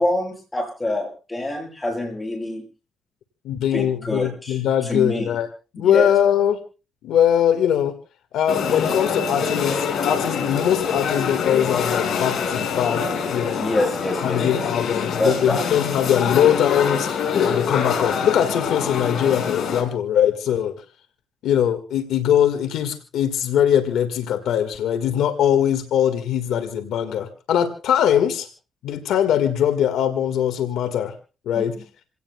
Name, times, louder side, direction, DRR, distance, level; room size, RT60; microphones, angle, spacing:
voice 1, 0.0-2.6 3.7-5.3 5.8-6.1 13.6-14.9 15.2-15.8 31.6-31.7, left 1 dB, 15° left, 2 dB, 7.4 m, -26 dB
voice 2, 3.4-5.5 5.7-6.6 7.0-7.9 8.3-13.0 13.3-13.7 14.2-17.1 17.4-20.7 21.4-28.5 28.8-31.1 31.4-31.8, left 9 dB, 80° left, 9 dB, 1.6 m, -21 dB
sound 1, 8.5-19.8, left 6 dB, 60° left, 4.9 m, -25 dB
28.0 x 17.5 x 2.2 m, 0.34 s
cardioid pair, 90°, 0 cm